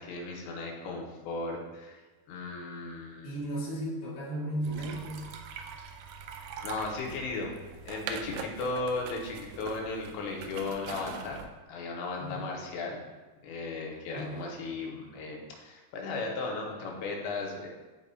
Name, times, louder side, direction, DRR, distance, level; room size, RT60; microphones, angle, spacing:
voice 1, 0.0-2.0 2.3-3.3 6.6-7.6 7.9-11.4 11.7-13.0 13.4-17.7, left 3 dB, 90° left, 0 dB, 3.2 m, -36 dB
voice 2, 3.2-5.3 12.2-12.5 14.1-14.5 16.9-17.0, right 1 dB, 70° left, -9 dB, 0.4 m, -35 dB
sound 1, 4.6-11.5, right 5 dB, 85° right, 2.8 m, -42 dB
10.5 x 5.5 x 2.3 m, 1.2 s
omnidirectional pair, 5.0 m